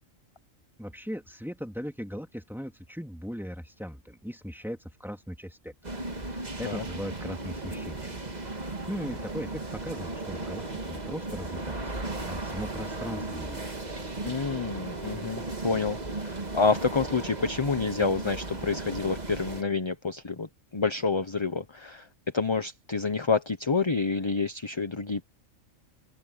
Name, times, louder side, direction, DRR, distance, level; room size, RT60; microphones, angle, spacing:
voice 1, 0.8-6.0 6.3-8.2 8.9-13.9, equal, ahead, 2.8 m, -39 dB
sound 1, 5.8-19.6, right 2 dB, 35° right, 2.0 m, -36 dB
voice 2, 14.2-22.1 22.3-25.2, left 4 dB, 25° left, 0.8 m, -28 dB
open air
omnidirectional pair, 1.3 m